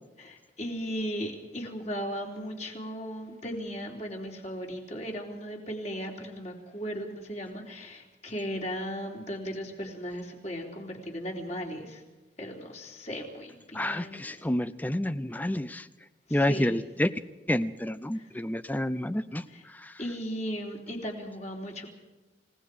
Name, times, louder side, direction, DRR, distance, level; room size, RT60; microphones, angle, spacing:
voice 1, 0.2-12.0 12.4-14.4 16.3-16.8 18.1-18.2 19.5-19.6 20.0-22.0, equal, 40° left, 1 dB, 3.7 m, -36 dB
voice 2, 13.7-15.9 16.3-17.1 17.5-19.9, left 1 dB, 10° left, 14 dB, 0.5 m, -29 dB
29.5 x 17.5 x 5.0 m, 1.2 s
head